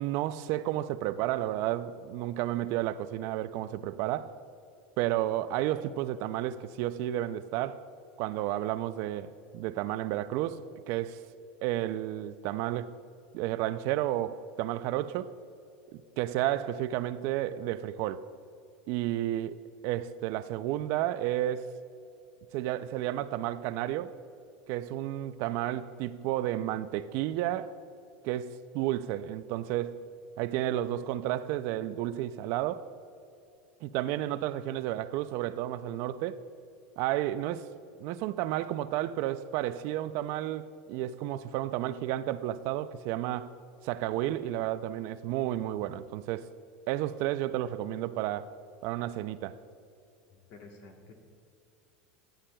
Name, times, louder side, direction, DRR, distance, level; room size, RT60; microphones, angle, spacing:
voice 1, 0.0-4.4 5.0-7.8 8.2-11.2 11.6-12.9 13.3-15.3 15.9-18.3 18.9-19.6 19.8-21.7 22.5-24.2 24.7-27.7 28.2-30.0 30.4-32.9 33.8-36.4 37.0-37.7 38.0-43.6 43.8-46.5 46.9-48.5 48.8-49.6, right 13 dB, 50° right, 0.4 m, -32 dB
voice 2, 50.3-51.1, left 3 dB, 50° left, 1.2 m, -51 dB
13.0 x 10.0 x 2.3 m
supercardioid pair, 145°, 6 cm